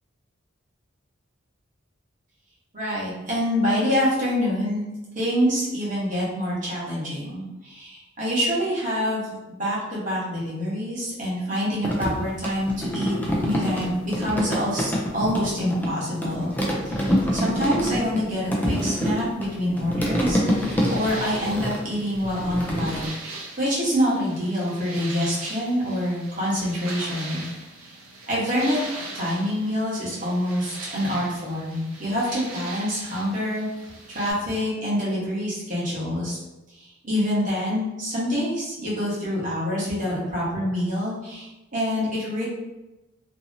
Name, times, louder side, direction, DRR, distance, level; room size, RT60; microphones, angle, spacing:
voice 1, 2.7-4.8 5.1-13.1 13.4-16.5 16.8-23.2 23.6-27.4 27.8-27.9 28.3-28.8 29.1-36.4 36.7-42.5, equal, 40° right, -7 dB, 1.1 m, -26 dB
sound 1, 11.8-15.9 16.2-23.1, equal, 10° left, 0.3 m, -26 dB
sound 2, 20.4-34.3, right 2 dB, 85° right, 0.7 m, -40 dB
2.7 x 2.7 x 2.6 m, 1.0 s
head